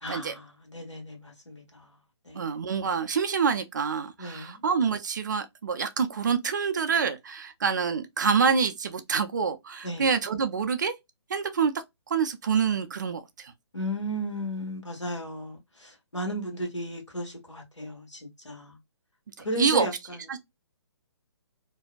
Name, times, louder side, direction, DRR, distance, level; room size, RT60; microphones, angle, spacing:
voice 1, 0.0-1.9 2.2-2.5 4.2-4.6 9.8-10.1 13.7-18.8 19.4-20.2, equal, 85° left, 1.2 m, -35 dB
voice 2, 2.3-10.9 11.3-11.7 12.1-13.5 19.6-19.9 20.3-20.4, right 6 dB, 40° right, 0.4 m, -26 dB
2.6 x 2.1 x 2.2 m
figure-of-eight pair, 135°, 15 cm